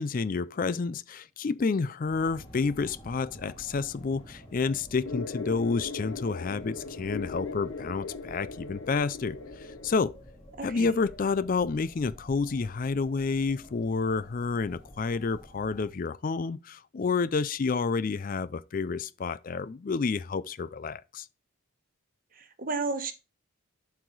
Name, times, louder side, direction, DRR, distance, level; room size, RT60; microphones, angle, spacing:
voice 1, 0.0-10.1 10.6-21.3, left 4 dB, 40° left, 0.4 m, -29 dB
sound 1, 2.0-15.9, equal, 25° left, 2.8 m, -50 dB
sound 2, 5.1-10.1, left 3 dB, 70° left, 0.8 m, -39 dB
voice 2, 10.6-10.9 22.3-23.1, right 3 dB, 40° right, 1.1 m, -33 dB
11.5 x 4.7 x 4.0 m
head